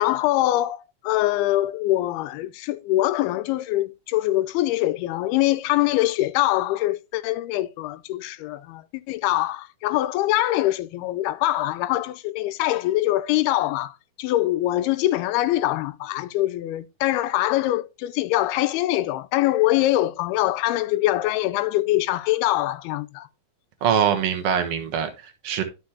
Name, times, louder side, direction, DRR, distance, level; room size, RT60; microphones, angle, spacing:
voice 1, 0.0-23.3, left 15 dB, 90° left, 2.5 m, -23 dB
voice 2, 23.8-25.6, right 8 dB, 70° right, 1.5 m, -23 dB
11.5 x 6.2 x 2.8 m
omnidirectional pair, 4.4 m